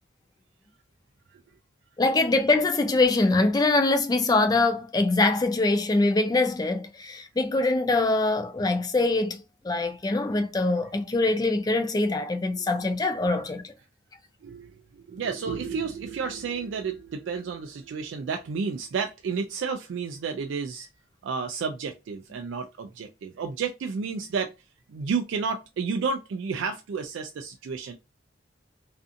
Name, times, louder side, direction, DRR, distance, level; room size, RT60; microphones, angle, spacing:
voice 1, 2.0-13.7, left 2 dB, 20° left, 0.3 m, -23 dB
voice 2, 14.4-20.9 21.2-24.5 24.9-27.9, right 5 dB, 75° right, 0.3 m, -31 dB
2.5 x 2.4 x 2.5 m
head